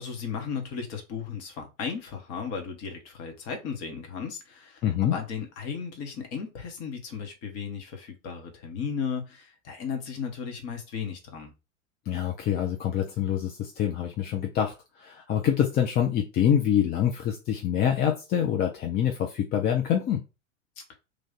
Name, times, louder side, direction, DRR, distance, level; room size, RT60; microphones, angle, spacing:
voice 1, 0.0-11.5 20.8-21.0, left 6 dB, 40° left, 1.3 m, -35 dB
voice 2, 4.8-5.2 12.1-20.2, left 9 dB, 25° left, 0.5 m, -26 dB
3.2 x 2.5 x 3.9 m
figure-of-eight pair, 85°, 39 cm